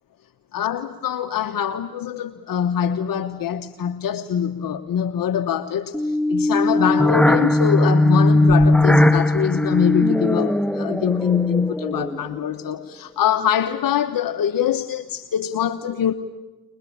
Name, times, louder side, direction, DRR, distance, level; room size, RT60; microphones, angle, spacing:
voice 1, 0.5-16.1, left 8 dB, 75° left, 8 dB, 1.2 m, -23 dB
sound 1, 5.9-12.3, left 1 dB, 5° left, 1.5 m, -18 dB
24.0 x 22.5 x 8.7 m, 1.1 s
supercardioid pair, 45°, 35 cm